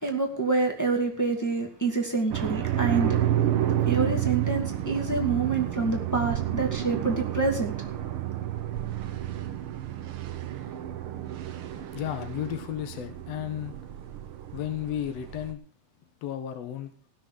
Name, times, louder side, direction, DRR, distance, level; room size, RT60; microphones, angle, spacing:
voice 1, 0.0-3.2 3.9-7.9, right 3 dB, 5° left, 0 dB, 1.5 m, -27 dB
sound 1, 2.3-15.5, right 11 dB, 75° right, 1.2 m, -30 dB
voice 2, 11.9-13.7 14.5-15.6 16.2-16.9, left 11 dB, 60° left, 7 dB, 2.0 m, -33 dB
17.5 x 6.3 x 6.2 m, 0.40 s
omnidirectional pair, 3.8 m